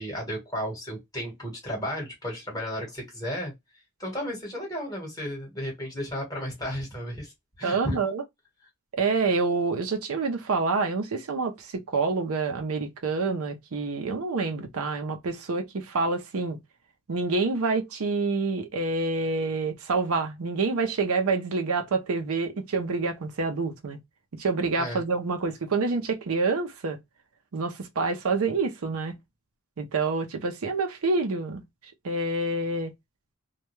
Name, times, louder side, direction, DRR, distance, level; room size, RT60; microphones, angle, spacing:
voice 1, 0.0-3.5 4.0-8.0 24.8-25.0, equal, 15° left, 1.2 m, -33 dB
voice 2, 7.6-8.2 9.0-16.6 17.1-24.0 24.4-27.0 27.5-29.2 29.8-31.6 32.0-32.9, right 3 dB, 75° right, 0.6 m, -27 dB
2.3 x 2.2 x 2.9 m
head